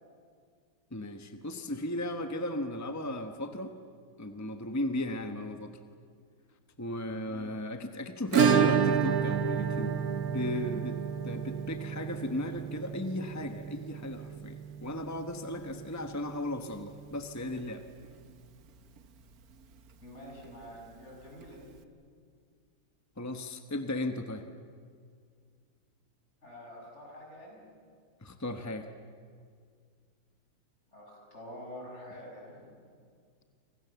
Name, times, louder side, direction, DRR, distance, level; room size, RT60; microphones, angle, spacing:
voice 1, 0.9-3.7 4.2-5.7 6.8-10.0 10.3-17.8 23.2-24.4 28.2-28.9, left 1 dB, 15° left, 7 dB, 0.6 m, -36 dB
voice 2, 7.2-7.5 20.0-21.7 26.4-27.6 30.9-32.7, equal, 30° left, -1 dB, 7.0 m, -47 dB
Acoustic guitar / Strum, 8.3-16.9 17.2-17.3 17.6-17.7 18.0-18.1 20.2-20.3 21.4-21.5, right 7 dB, 55° right, 1.3 m, -30 dB
29.0 x 25.5 x 7.1 m, 2.1 s
omnidirectional pair, 2.3 m